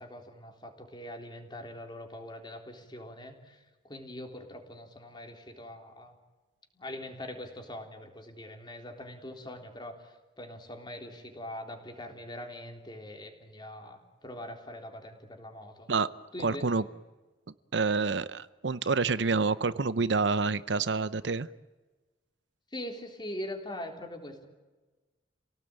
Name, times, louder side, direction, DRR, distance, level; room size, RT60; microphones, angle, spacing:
voice 1, 0.0-6.2 6.7-15.9 16.3-16.8 22.7-24.5, left 1 dB, 25° left, 3 dB, 3.6 m, -43 dB
voice 2, 16.4-16.8 17.7-21.5, right 4 dB, 70° right, 15 dB, 0.7 m, -28 dB
29.0 x 18.0 x 9.0 m, 1.2 s
head